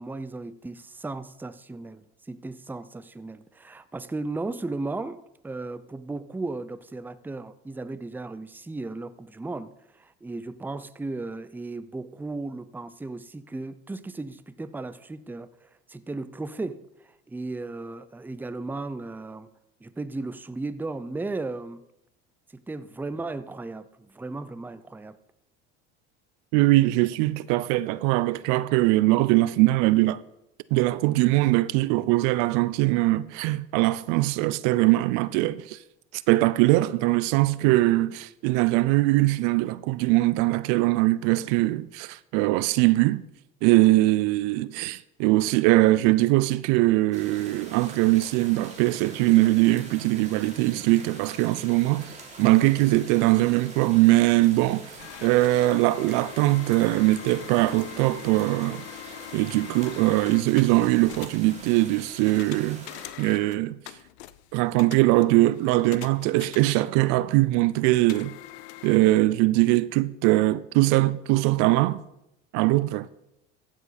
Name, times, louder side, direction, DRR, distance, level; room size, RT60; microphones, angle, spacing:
voice 1, 0.0-19.5 19.8-21.8 22.5-25.2, right 3 dB, 5° right, 0.5 m, -35 dB
voice 2, 26.5-30.2 30.7-35.8 36.1-43.2 43.6-58.8 59.3-62.9 63.2-63.8 64.5-68.3 68.8-72.0 72.5-73.1, right 18 dB, 70° right, 0.6 m, -21 dB
sound 1, 47.1-63.1, right 2 dB, 20° right, 3.2 m, -45 dB
sound 2, 55.0-67.3 68.1-69.0, left 15 dB, 85° left, 0.6 m, -44 dB
14.5 x 7.4 x 4.2 m
supercardioid pair, 85°, 32 cm